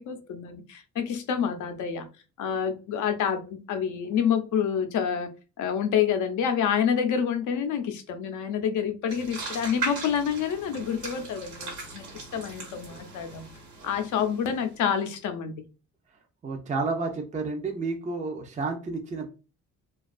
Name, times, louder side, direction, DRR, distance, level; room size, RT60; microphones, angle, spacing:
voice 1, 0.0-2.0 2.4-5.3 5.6-13.4 13.8-15.5, left 8 dB, 75° left, 7 dB, 0.6 m, -28 dB
sound 1, 9.1-14.9, right 3 dB, 80° right, 1.0 m, -38 dB
voice 2, 16.4-19.3, right 3 dB, 25° right, 2 dB, 0.5 m, -30 dB
2.3 x 2.3 x 2.4 m, 0.32 s
cardioid pair, 90°, 30 cm